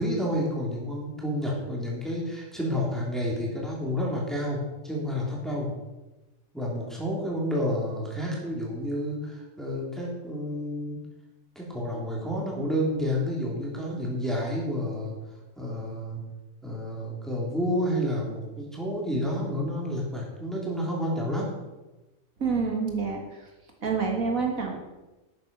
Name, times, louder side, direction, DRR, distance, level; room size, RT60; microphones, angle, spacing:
voice 1, 0.0-4.6 4.8-5.7 6.5-11.0 11.5-15.1 15.6-16.2 16.6-21.5, equal, ahead, -4 dB, 3.2 m, -30 dB
voice 2, 22.4-23.5 23.8-24.7, right 5 dB, 70° right, 1 dB, 2.2 m, -27 dB
12.0 x 9.0 x 5.4 m, 1.1 s
omnidirectional pair, 1.5 m